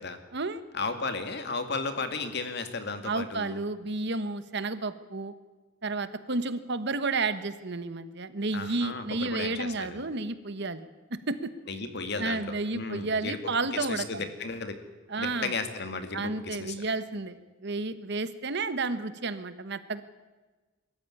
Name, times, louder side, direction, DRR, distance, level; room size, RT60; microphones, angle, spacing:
voice 1, 0.7-3.6 8.5-10.0 11.7-13.4 13.7-14.8 15.2-16.7, left 4 dB, 60° left, 8 dB, 2.2 m, -34 dB
voice 2, 3.0-5.3 5.8-11.5 12.2-14.3 15.1-15.5 16.1-17.4 17.6-20.0, right 3 dB, 65° right, 12 dB, 1.3 m, -31 dB
22.5 x 13.5 x 9.8 m, 1.2 s
head